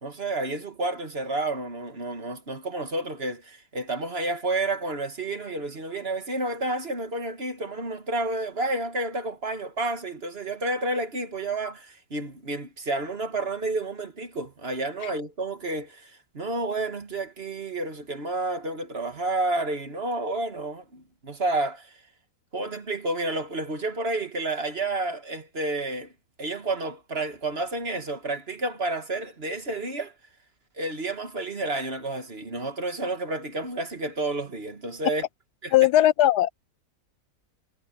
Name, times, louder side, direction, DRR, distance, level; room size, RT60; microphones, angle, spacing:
voice 1, 0.0-22.0 22.5-26.1 26.4-30.1 30.8-35.2 35.6-35.7, right 2 dB, 35° right, 1.9 m, -30 dB
voice 2, 35.7-36.5, left 13 dB, 75° left, 1.1 m, -19 dB
omnidirectional pair, 1.8 m